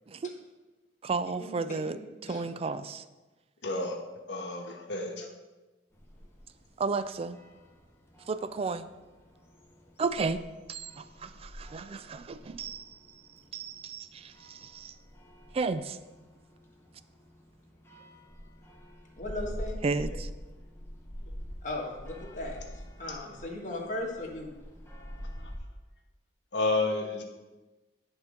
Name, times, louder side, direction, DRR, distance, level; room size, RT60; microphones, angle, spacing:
voice 1, 1.0-3.0 6.8-7.4 8.3-8.9 10.0-10.4 10.7-13.0 13.5-14.9 15.5-16.0 19.8-20.3, right 4 dB, 35° right, 0.3 m, -33 dB
voice 2, 3.6-4.0 4.3-5.3 26.5-27.2, left 2 dB, 70° left, 1.2 m, -30 dB
sound 1, 5.9-25.6, equal, 15° left, 1.0 m, -46 dB
voice 3, 19.2-19.8 21.6-22.6 23.0-24.5, left 1 dB, 45° left, 1.5 m, -37 dB
10.5 x 3.7 x 5.2 m
head